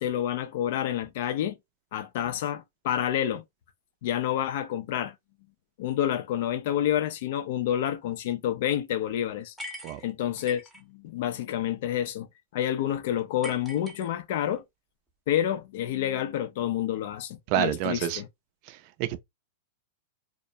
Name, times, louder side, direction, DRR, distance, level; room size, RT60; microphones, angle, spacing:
voice 1, 0.0-1.6 1.9-3.4 4.0-5.1 5.8-9.5 10.0-10.6 10.9-12.3 12.5-14.6 15.3-18.3, left 11 dB, 60° left, 0.4 m, -28 dB
sound 1, 9.6-10.8 13.4-14.6, left 1 dB, 5° right, 0.6 m, -42 dB
voice 2, 17.5-18.2 18.6-19.2, right 12 dB, 45° right, 0.4 m, -28 dB
2.3 x 2.0 x 2.6 m
hypercardioid pair, 135°, 0 cm